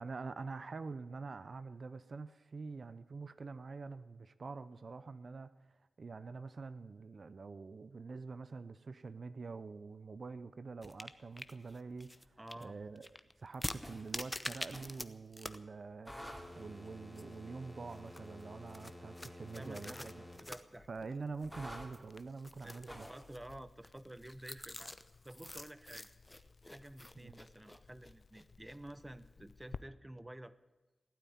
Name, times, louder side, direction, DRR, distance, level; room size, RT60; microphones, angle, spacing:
voice 1, 0.0-13.1 13.4-20.2 20.9-23.1 27.2-27.3, right 4 dB, 60° right, 13 dB, 0.6 m, -46 dB
sound 1, 10.8-15.1 15.3-15.6 15.9-16.0 16.4-17.6 17.9-28.8, left 1 dB, 20° left, 0.8 m, -47 dB
voice 2, 12.4-12.8 19.6-21.1 22.6-25.0 25.2-26.1 26.6-30.6, right 1 dB, 20° right, 15 dB, 0.8 m, -51 dB
sound 2, 13.8-14.1 14.7-15.0 16.1-20.4 21.5-21.9 22.9-23.3, equal, ahead, 2.7 m, -50 dB
Crackle, 20.3-29.8, left 5 dB, 65° left, 0.5 m, -57 dB
16.5 x 9.1 x 9.4 m, 1.1 s
cardioid pair, 55°, 0 cm